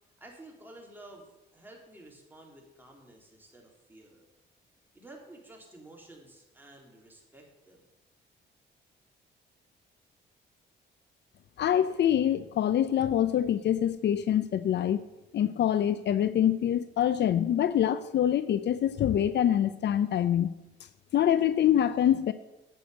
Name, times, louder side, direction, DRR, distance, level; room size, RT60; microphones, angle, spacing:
voice 1, 0.2-1.3 1.5-4.2 4.9-7.8, right 1 dB, 10° right, -1 dB, 3.6 m, -51 dB
voice 2, 11.6-15.0 15.3-20.5 21.1-22.3, left 10 dB, 60° left, 14 dB, 0.6 m, -25 dB
9.3 x 8.4 x 8.0 m, 0.99 s
cardioid pair, 90°, 20 cm